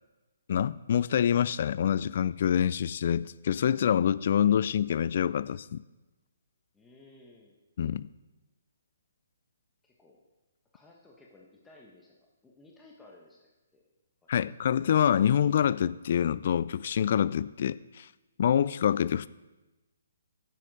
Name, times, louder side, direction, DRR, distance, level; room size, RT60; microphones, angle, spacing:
voice 1, 0.5-5.8 7.8-8.1 14.3-18.1 18.4-19.3, left 9 dB, 50° left, 18 dB, 0.3 m, -26 dB
voice 2, 6.7-7.5 9.8-10.2 10.7-13.8 14.2-14.4, left 2 dB, 10° left, -2 dB, 1.2 m, -57 dB
10.5 x 7.7 x 4.9 m, 1.1 s
figure-of-eight pair, 135°, 0 cm